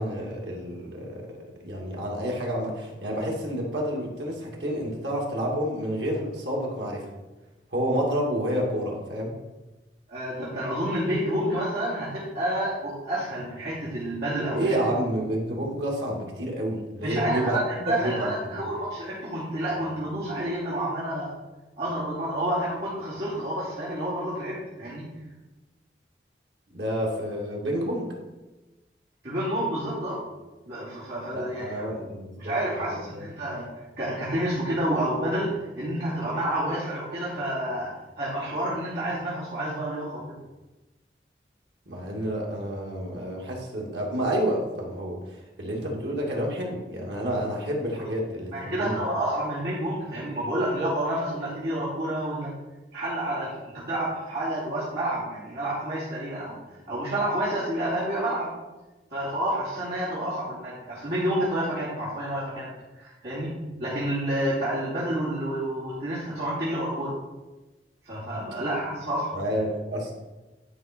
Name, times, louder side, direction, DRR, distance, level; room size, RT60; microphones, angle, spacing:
voice 1, 0.0-7.1 7.7-9.4 14.5-18.6 26.7-28.1 31.3-33.2 41.9-49.0 69.3-70.1, equal, 85° right, -1 dB, 2.4 m, -29 dB
voice 2, 10.1-14.8 17.0-21.4 21.8-25.1 29.2-30.2 30.6-31.9 32.4-33.7 34.0-40.4 48.0-48.1 48.5-52.5 52.9-56.6 56.9-58.5 59.1-67.2 68.0-69.3, right 1 dB, 60° right, -10 dB, 2.8 m, -29 dB
11.5 x 5.5 x 4.5 m, 1.1 s
head